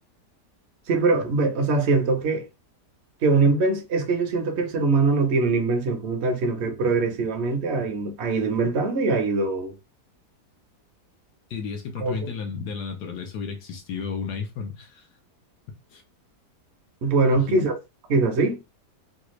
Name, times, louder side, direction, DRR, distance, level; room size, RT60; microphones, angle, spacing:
voice 1, 0.9-2.4 3.2-9.7 12.0-12.3 17.0-17.7 18.1-18.6, right 3 dB, 55° right, 0.8 m, -22 dB
voice 2, 11.5-15.1 15.9-16.0 17.2-17.7, left 5 dB, 75° left, 1.2 m, -33 dB
3.3 x 2.4 x 3.0 m
omnidirectional pair, 1.8 m